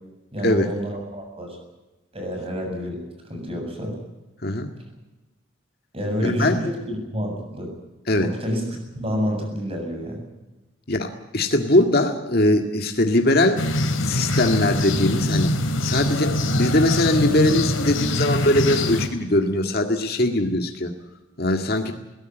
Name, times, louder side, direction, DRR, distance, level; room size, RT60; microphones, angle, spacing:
voice 1, 0.3-1.5 2.1-3.0 3.3-4.0 5.9-7.7 8.2-10.2, equal, 30° right, 3 dB, 7.4 m, -28 dB
voice 2, 6.2-6.6 8.1-8.3 10.9-13.6 14.0-15.5 15.8-20.9 21.4-21.9, left 1 dB, 50° left, 4 dB, 1.9 m, -21 dB
sound 1, 13.6-19.1, left 1 dB, 80° left, 2.7 m, -24 dB
21.5 x 17.5 x 9.0 m, 1.1 s
head